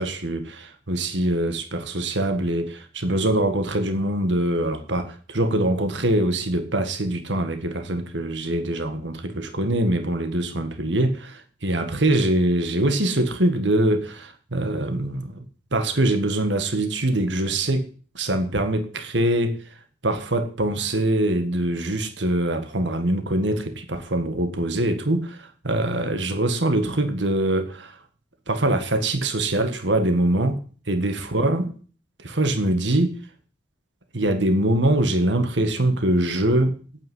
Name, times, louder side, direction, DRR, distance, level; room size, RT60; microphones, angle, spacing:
voice 1, 0.0-15.5 15.7-17.9 18.2-19.6 20.0-28.0 28.5-30.6 30.9-31.7 32.2-33.2 34.1-36.8, right 1 dB, 75° right, 1.9 m, -23 dB
9.3 x 9.2 x 9.4 m
head